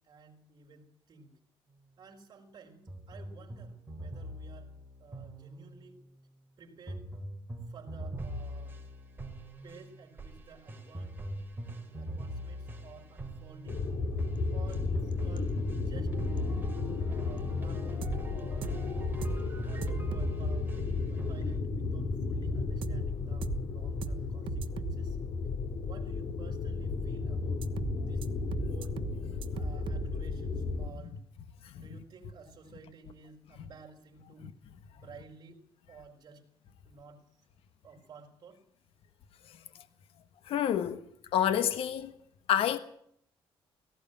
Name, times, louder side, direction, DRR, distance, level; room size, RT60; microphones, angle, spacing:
voice 1, 0.0-1.3 2.0-4.7 5.0-6.0 6.6-7.0 7.7-8.8 9.6-11.2 11.7-13.8 14.5-16.1 17.1-18.7 19.7-20.7 21.1-25.2 25.8-27.6 28.0-28.3 28.7-29.0 29.5-31.2 31.7-34.5 34.9-35.6 35.9-36.4 36.8-37.4 37.8-38.6, right 5 dB, 45° right, 4.7 m, -54 dB
sound 1, 2.9-6.0 6.9-21.6, right 1 dB, 20° right, 4.0 m, -42 dB
sound 2, 13.7-30.9, left 3 dB, 55° left, 2.8 m, -33 dB
sound 3, 18.0-18.2 18.6-18.8 19.2-19.4 19.8-20.3 22.8-23.0 23.4-23.6 24.0-24.2 24.5-24.9 27.6-27.9 28.2-28.3 28.5-29.1 29.4-30.0, right 9 dB, 60° right, 1.3 m, -36 dB
voice 2, 40.4-41.1 41.3-42.2 42.5-42.8, left 10 dB, 75° left, 1.4 m, -28 dB
17.5 x 16.5 x 9.0 m
cardioid pair, 145°, 10 cm